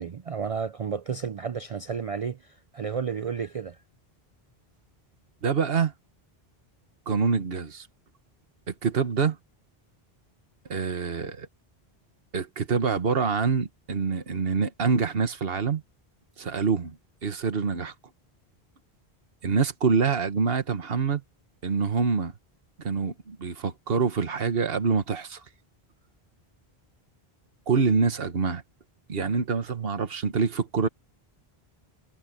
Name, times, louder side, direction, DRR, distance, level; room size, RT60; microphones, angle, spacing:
voice 1, 0.0-3.8, right 6 dB, 45° right, 0.5 m, -32 dB
voice 2, 5.4-5.9 7.1-7.9 8.7-9.4 10.7-11.5 12.3-15.8 16.4-17.0 17.2-17.9 19.4-21.2 21.6-22.3 22.8-25.4 27.7-28.6 29.1-30.9, right 5 dB, 65° right, 1.6 m, -26 dB
omnidirectional pair, 1.1 m